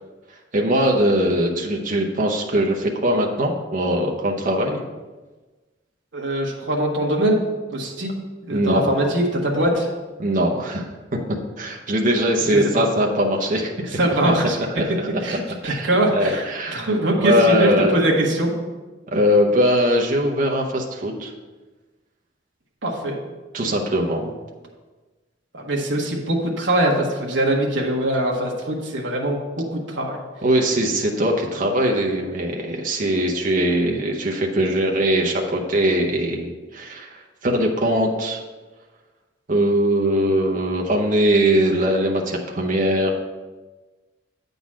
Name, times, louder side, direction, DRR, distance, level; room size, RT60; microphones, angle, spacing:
voice 1, 0.5-4.8 8.5-8.9 10.2-10.9 11.6-13.9 14.8-15.1 15.6-16.9 17.2-17.9 19.1-21.3 23.5-24.3 30.4-38.4 39.5-43.2, equal, 45° right, 0 dB, 0.8 m, -21 dB
voice 2, 6.1-7.4 7.7-8.1 8.4-9.9 12.5-12.8 13.9-14.6 15.2-18.5 22.8-23.1 25.5-30.2, right 1 dB, 70° right, -2 dB, 1.3 m, -22 dB
8.5 x 4.0 x 6.1 m, 1.3 s
head